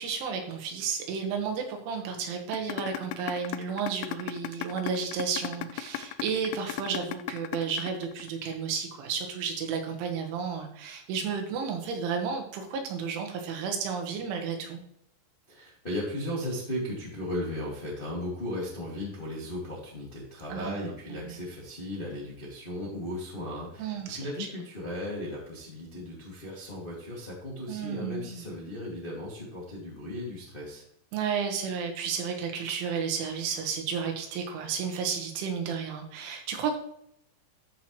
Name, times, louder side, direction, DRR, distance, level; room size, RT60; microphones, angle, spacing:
voice 1, 0.0-14.8 20.5-20.8 21.1-21.4 23.8-24.5 27.7-28.4 31.1-36.8, right 6 dB, 80° right, 3 dB, 3.8 m, -32 dB
sound 1, 2.5-8.5, left 16 dB, 85° left, 2.5 m, -35 dB
voice 2, 15.5-30.8, left 1 dB, 35° left, -5 dB, 0.8 m, -36 dB
13.0 x 6.0 x 3.1 m, 0.75 s
omnidirectional pair, 5.5 m